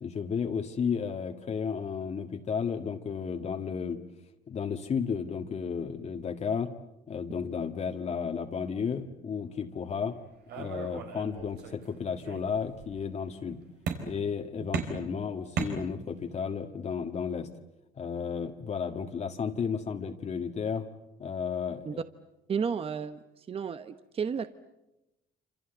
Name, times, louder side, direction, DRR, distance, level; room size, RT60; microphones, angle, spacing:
voice 1, 0.0-4.0 4.5-6.7 7.1-10.2 10.6-13.6 14.0-17.5 18.0-20.9 21.2-22.0, left 6 dB, 40° left, 4 dB, 1.8 m, -33 dB
sound 1, 10.5-11.9 12.2-12.9 13.9-14.4 14.7-16.3, right 6 dB, 85° right, 4.5 m, -36 dB
voice 2, 22.5-24.5, right 6 dB, 35° right, 11 dB, 1.1 m, -32 dB
27.0 x 27.0 x 8.0 m, 0.94 s
cardioid pair, 110°, 17 cm